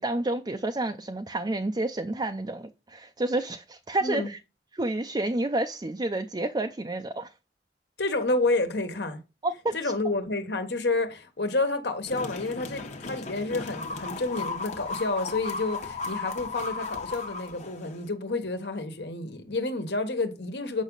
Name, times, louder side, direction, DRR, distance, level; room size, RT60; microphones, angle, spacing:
voice 1, 0.0-4.4 4.8-7.3 9.4-9.8, right 2 dB, 25° right, 0.5 m, -29 dB
voice 2, 8.0-9.2 9.7-20.8, left 2 dB, 70° left, 1.5 m, -29 dB
sound 1, 12.1-18.1, left 3 dB, 40° left, 1.1 m, -35 dB
8.3 x 6.0 x 3.9 m
head